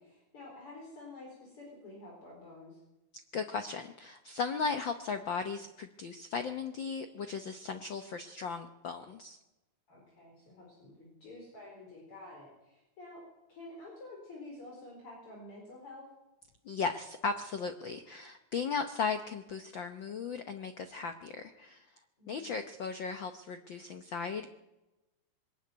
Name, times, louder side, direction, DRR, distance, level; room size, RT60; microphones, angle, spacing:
voice 1, 0.0-2.8 9.9-13.2 13.5-16.1 22.2-22.5, left 2 dB, 45° left, -2 dB, 5.5 m, -49 dB
voice 2, 3.3-9.4 16.6-21.9 22.3-24.5, left 5 dB, 75° left, 8 dB, 1.1 m, -36 dB
22.0 x 13.0 x 9.4 m, 1.0 s
omnidirectional pair, 3.5 m